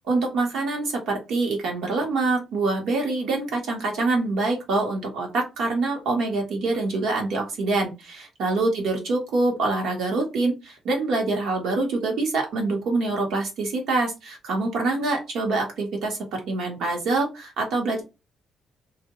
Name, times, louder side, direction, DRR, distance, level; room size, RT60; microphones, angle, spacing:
voice 1, 0.1-18.0, right 3 dB, 75° right, 1 dB, 1.3 m, -25 dB
2.6 x 2.3 x 3.0 m, 0.26 s
cardioid pair, 90°, 0 cm